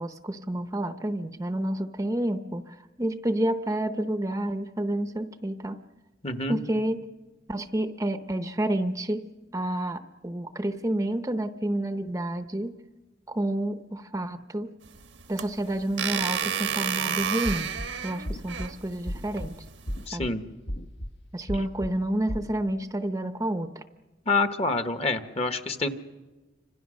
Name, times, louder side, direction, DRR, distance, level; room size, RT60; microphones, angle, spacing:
voice 1, 0.0-5.8 6.5-7.1 7.5-9.2 9.5-12.8 13.3-14.7 15.3-17.7 18.0-19.5 20.1-20.3 21.3-23.7, right 1 dB, 15° right, 9 dB, 0.7 m, -29 dB
voice 2, 6.2-6.6 20.1-20.4 24.3-25.9, left 3 dB, 35° left, 8 dB, 1.2 m, -27 dB
sound 1, 14.8-20.1, right 8 dB, 85° right, 1.3 m, -31 dB
sound 2, 17.4-17.9 18.2-18.7 19.1-19.5 19.9-20.3 20.7-21.1 21.5-21.9 22.3-22.5, equal, 60° left, 1.2 m, -33 dB
29.5 x 25.5 x 6.4 m, 1.2 s
head